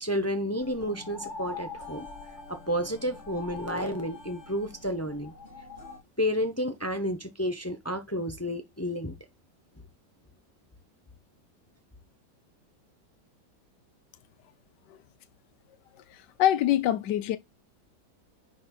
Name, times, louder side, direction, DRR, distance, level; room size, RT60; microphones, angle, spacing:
voice 1, 0.0-2.1 2.5-5.3 6.2-9.1, equal, 15° left, 0.5 m, -31 dB
sound 1, 0.6-6.0, left 3 dB, 40° left, 2.3 m, -43 dB
voice 2, 16.1-17.4, left 12 dB, 70° left, 1.4 m, -25 dB
10.5 x 4.6 x 3.9 m
omnidirectional pair, 2.0 m